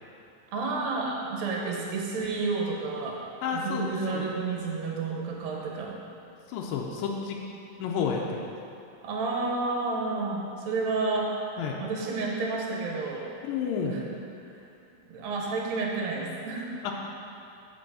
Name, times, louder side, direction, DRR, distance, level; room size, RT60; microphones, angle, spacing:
voice 1, 0.5-3.2 3.5-6.0 9.0-11.3 11.8-13.2 13.8-14.0 15.1-16.7, right 3 dB, 65° right, -2 dB, 2.0 m, -30 dB
voice 2, 3.4-4.2 6.5-7.4 7.8-8.5 11.6-11.8 13.4-14.0 16.8-16.9, left 6 dB, 85° left, -1 dB, 2.3 m, -30 dB
7.7 x 5.4 x 6.9 m, 2.7 s
omnidirectional pair, 4.1 m